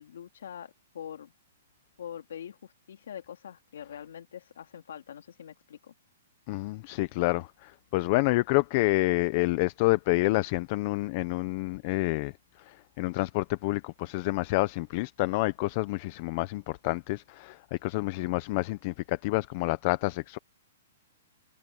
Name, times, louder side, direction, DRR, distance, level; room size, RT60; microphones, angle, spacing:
voice 1, 0.0-1.3 2.0-5.9, left 9 dB, 70° left, 2.4 m, -44 dB
voice 2, 6.5-20.4, left 22 dB, 30° left, 0.5 m, -28 dB
hypercardioid pair, 170°, 0 cm